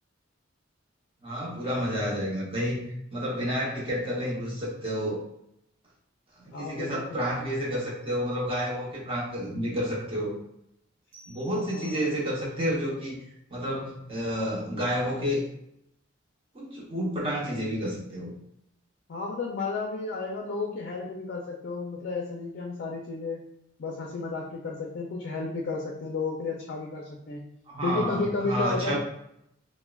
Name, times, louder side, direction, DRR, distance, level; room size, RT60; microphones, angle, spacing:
voice 1, 1.2-5.2 6.4-10.3 11.3-13.2 13.5-15.4 16.5-18.3 27.7-29.0, equal, 30° right, -4 dB, 0.7 m, -30 dB
voice 2, 6.5-7.0 11.7-12.0 19.1-23.4 23.8-27.4 27.8-29.0, left 3 dB, 60° left, 0 dB, 0.4 m, -32 dB
sound 1, 11.1-12.6, left 2 dB, 85° right, 0.8 m, -52 dB
3.3 x 2.0 x 2.2 m, 0.78 s
head